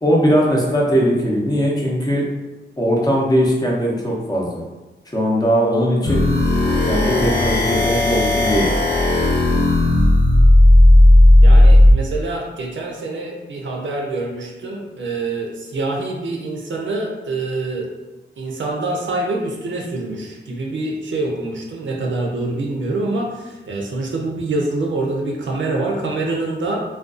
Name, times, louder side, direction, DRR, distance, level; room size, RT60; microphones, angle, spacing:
voice 1, 0.0-2.2 2.8-4.6 5.1-6.3 6.9-8.7, equal, 20° left, -4 dB, 0.6 m, -19 dB
sound 1, 6.0-12.0, left 1 dB, 65° left, 0.9 m, -12 dB
voice 2, 11.4-17.9 18.4-26.8, right 2 dB, 85° right, -1 dB, 0.5 m, -25 dB
2.4 x 2.3 x 2.4 m, 1.1 s
wide cardioid pair, 95°, 19 cm